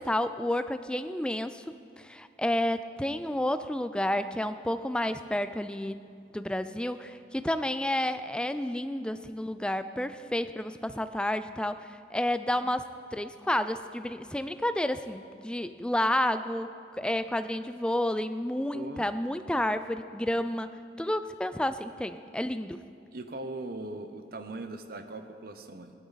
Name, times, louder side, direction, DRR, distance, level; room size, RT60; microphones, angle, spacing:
voice 1, 0.0-6.1 6.3-20.7 21.0-22.8, left 1 dB, 5° left, 11 dB, 0.3 m, -30 dB
voice 2, 18.7-19.0 23.1-25.9, right 2 dB, 55° right, 8 dB, 0.8 m, -40 dB
17.0 x 12.5 x 4.1 m, 2.4 s
head